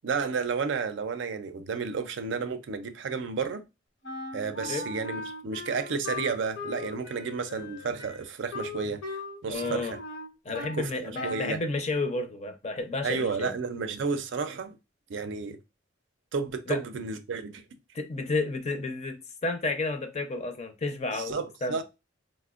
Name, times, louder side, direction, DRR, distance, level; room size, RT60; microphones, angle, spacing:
voice 1, 0.0-3.6 4.3-9.0 9.4-10.0 10.7-11.6 13.0-14.8 15.1-15.6 16.3-17.6 21.1-21.8, right 5 dB, 80° right, 0.4 m, -32 dB
Wind instrument woodwind instrument, 4.0-10.8 11.1-11.6, left 3 dB, 80° left, 0.9 m, -38 dB
voice 2, 9.5-10.0 10.4-13.5 16.7-16.8 17.9-21.8, left 3 dB, 35° left, 0.5 m, -31 dB
4.2 x 2.0 x 2.3 m
head